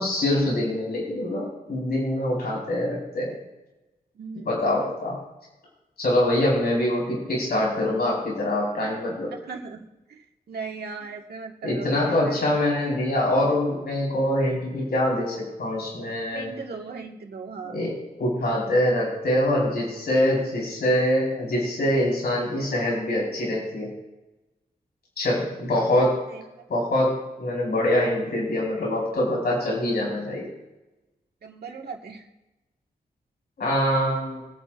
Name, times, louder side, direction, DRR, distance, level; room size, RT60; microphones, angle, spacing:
voice 1, 0.0-3.4 4.4-5.2 6.0-9.3 11.6-16.5 17.7-23.9 25.2-26.2 26.7-30.5 33.6-34.4, left 1 dB, 80° left, -4 dB, 5.0 m, -24 dB
voice 2, 4.2-4.5 9.3-12.6 16.3-17.8 26.3-26.4 31.4-32.3, right 5 dB, 85° right, 1 dB, 1.9 m, -38 dB
23.5 x 9.7 x 2.6 m, 1.0 s
wide cardioid pair, 175°, 16 cm